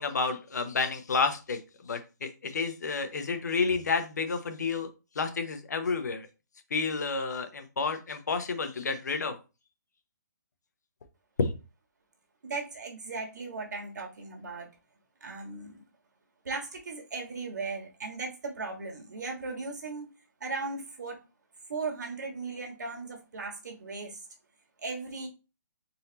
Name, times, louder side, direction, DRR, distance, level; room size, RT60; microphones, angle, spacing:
voice 1, 0.0-4.9 5.1-6.3 6.7-9.4 11.4-11.5, left 4 dB, 65° left, 0.9 m, -30 dB
voice 2, 12.4-14.7 15.2-15.8 16.4-20.1 20.4-21.2 21.7-24.2 24.8-25.3, right 3 dB, 65° right, 1.5 m, -37 dB
4.1 x 2.8 x 3.9 m
hypercardioid pair, 180°, 10 cm